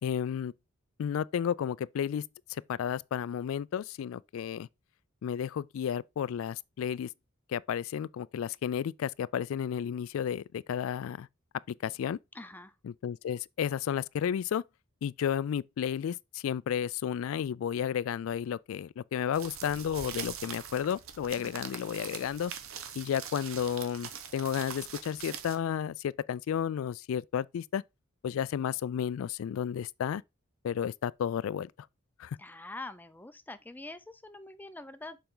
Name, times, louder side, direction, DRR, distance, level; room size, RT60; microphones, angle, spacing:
voice 1, 0.0-0.5 1.0-4.7 5.2-7.1 7.5-11.3 11.8-12.2 12.8-14.6 15.0-22.5 23.0-27.8 28.2-30.2 30.6-31.7 32.2-32.4, left 8 dB, 75° left, 0.3 m, -32 dB
voice 2, 12.3-12.7 21.4-21.6 32.4-35.2, left 2 dB, 10° left, 0.5 m, -45 dB
sound 1, 19.3-25.6, right 8 dB, 85° right, 1.0 m, -43 dB
6.9 x 5.0 x 3.8 m
head